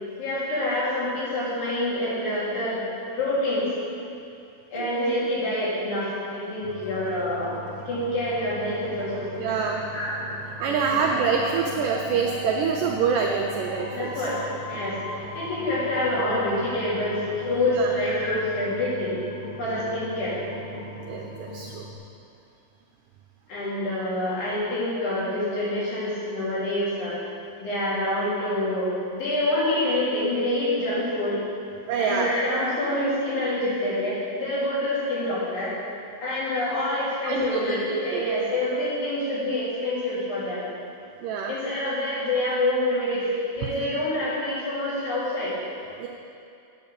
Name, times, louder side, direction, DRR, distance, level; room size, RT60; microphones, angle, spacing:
voice 1, 0.2-3.7 4.7-7.5 7.9-9.4 9.9-10.2 11.1-11.6 13.9-14.4 14.7-19.2 19.6-20.4 23.5-27.2 27.6-31.4 32.0-35.7 36.2-40.6 41.5-45.6, left 1 dB, 90° left, -9 dB, 5.1 m, -27 dB
sound 1, 6.6-22.0, equal, 50° left, 2.6 m, -40 dB
voice 2, 9.4-9.8 10.6-14.3 17.8-17.9 21.1-21.8 31.9-32.3 37.3-38.3 41.2-41.5 46.0-46.1, right 6 dB, 90° right, 1 dB, 1.8 m, -26 dB
sound 2, 10.9-17.7, left 1 dB, 65° left, 1.2 m, -39 dB
8.7 x 8.0 x 6.9 m, 2.6 s
omnidirectional pair, 4.6 m